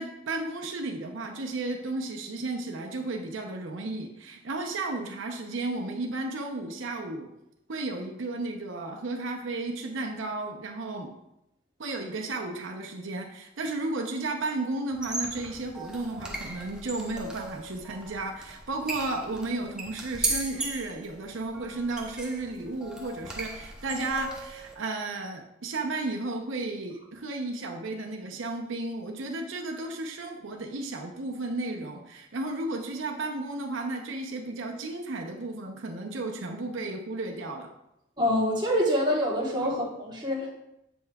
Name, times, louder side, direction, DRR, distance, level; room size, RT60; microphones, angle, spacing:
voice 1, 0.0-7.3 7.7-11.1 11.8-37.7 39.6-39.8, right 2 dB, 85° right, 2 dB, 0.7 m, -33 dB
sound 1, 14.9-24.7, right 2 dB, 5° right, 0.6 m, -37 dB
voice 2, 38.2-40.5, equal, 25° right, -3 dB, 1.2 m, -26 dB
7.7 x 5.4 x 2.3 m, 0.84 s
head